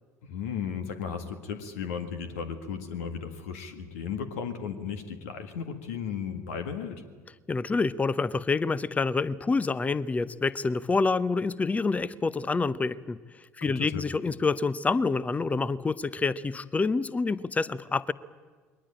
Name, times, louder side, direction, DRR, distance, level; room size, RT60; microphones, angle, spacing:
voice 1, 0.2-7.0 13.6-14.0, left 7 dB, 65° left, 8 dB, 1.7 m, -35 dB
voice 2, 7.5-13.2 13.6-18.1, left 4 dB, 20° left, 19 dB, 0.8 m, -27 dB
22.0 x 19.0 x 8.9 m, 1.4 s
figure-of-eight pair, 60°, 8 cm